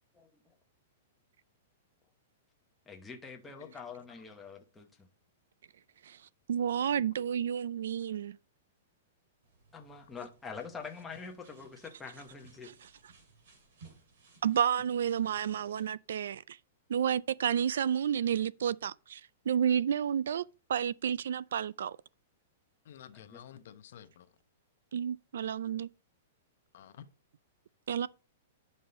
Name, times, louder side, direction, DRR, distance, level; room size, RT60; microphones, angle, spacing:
voice 1, 0.1-0.6 2.9-5.1 9.7-12.7 23.1-23.4, left 5 dB, 5° left, 0.8 m, -45 dB
voice 2, 6.5-8.4 14.4-16.6 16.9-19.2 19.5-22.0 24.9-25.9 27.9-28.1, right 8 dB, 70° right, 0.3 m, -31 dB
sound 1, 9.4-15.9, right 4 dB, 55° right, 2.5 m, -61 dB
voice 3, 22.8-24.3 26.7-27.0, left 9 dB, 50° left, 0.8 m, -51 dB
9.5 x 5.4 x 4.1 m
supercardioid pair, 180°, 0 cm